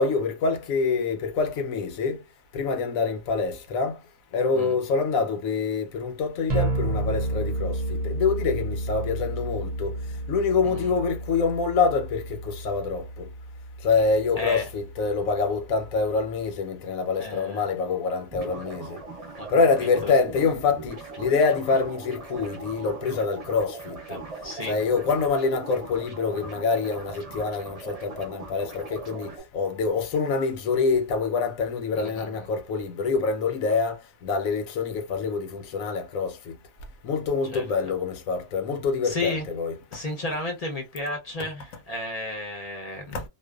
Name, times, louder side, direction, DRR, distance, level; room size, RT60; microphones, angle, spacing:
voice 1, 0.0-2.2 2.5-4.0 4.3-10.0 10.3-13.3 13.8-19.0 19.5-24.2 24.6-36.6 37.0-39.8 41.4-41.5 43.1-43.2, left 4 dB, 75° left, 1.0 m, -26 dB
sound 1, 6.5-16.5, right 1 dB, 65° right, 0.4 m, -32 dB
voice 2, 10.6-10.9 14.4-14.7 17.1-17.6 19.4-20.1 24.1-24.8 31.9-32.5 37.5-37.9 39.0-39.5 39.9-43.2, left 2 dB, 40° left, 0.5 m, -33 dB
sound 2, 18.3-29.4, right 3 dB, 30° right, 0.8 m, -40 dB
2.6 x 2.2 x 2.3 m
omnidirectional pair, 1.5 m